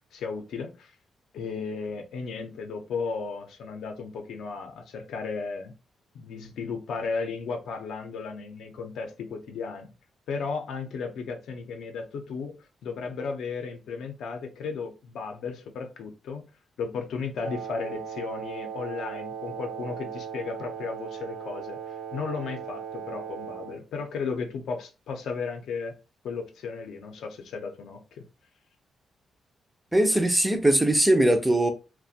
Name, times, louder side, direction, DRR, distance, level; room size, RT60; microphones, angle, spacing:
voice 1, 0.1-0.9 1.3-5.7 6.1-9.9 10.3-12.6 12.8-16.4 16.8-21.8 22.1-25.9 26.2-28.2, left 5 dB, 75° left, 0.5 m, -34 dB
Wind instrument woodwind instrument, 17.4-23.8, right 8 dB, 75° right, 0.5 m, -38 dB
voice 2, 29.9-31.7, right 1 dB, 5° right, 0.3 m, -21 dB
2.4 x 2.1 x 2.6 m
wide cardioid pair, 165°, 0 cm